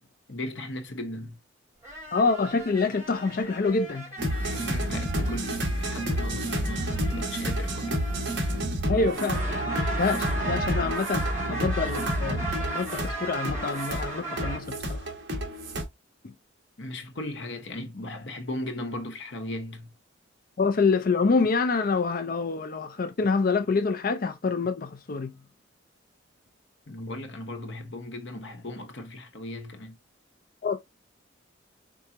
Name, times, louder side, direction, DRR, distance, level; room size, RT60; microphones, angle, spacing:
voice 1, 0.3-1.4 4.4-8.0 16.8-19.9 26.9-29.9, left 1 dB, 65° left, 1.0 m, -37 dB
sound 1, 1.8-8.8 9.1-14.6, right 2 dB, 15° right, 2.8 m, -37 dB
voice 2, 2.1-4.1 8.9-15.1 16.2-16.3 20.6-25.3 30.6-30.8, left 4 dB, 45° left, 0.5 m, -26 dB
sound 2, 4.2-15.8, equal, 60° right, 1.2 m, -29 dB
4.6 x 3.8 x 2.9 m
head